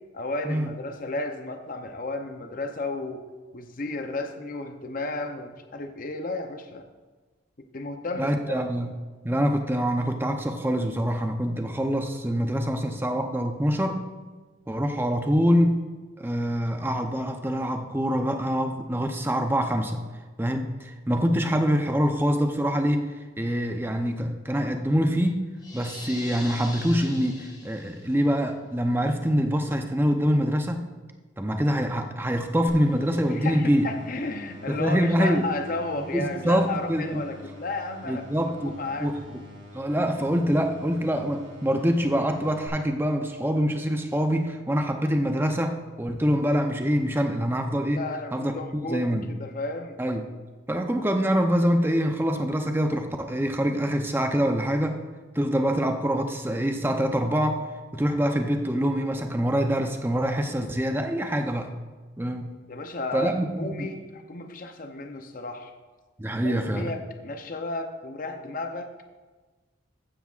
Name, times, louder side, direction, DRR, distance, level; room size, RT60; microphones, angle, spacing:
voice 1, 0.1-3.2 3.5-6.9 7.6-8.6 33.3-38.2 38.6-39.1 47.9-50.0 62.7-65.7 66.4-68.9, left 2 dB, 45° left, 6 dB, 0.6 m, -33 dB
voice 2, 8.2-8.9 9.2-14.0 14.7-15.9 16.2-20.0 20.4-23.1 23.4-25.5 25.7-30.9 31.4-33.9 34.7-35.4 36.0-37.2 38.1-39.4 39.7-48.0 48.3-49.3 50.0-50.3 50.7-55.0 55.3-57.6 57.9-61.7 62.2-62.5 63.1-63.9 66.2-66.9, equal, 10° right, 5 dB, 0.6 m, -25 dB
sound 1, 25.6-28.2, left 2 dB, 20° left, 2.1 m, -41 dB
sound 2, 32.7-42.7, left 1 dB, 70° right, 3.6 m, -46 dB
14.5 x 9.8 x 2.4 m, 1.3 s
head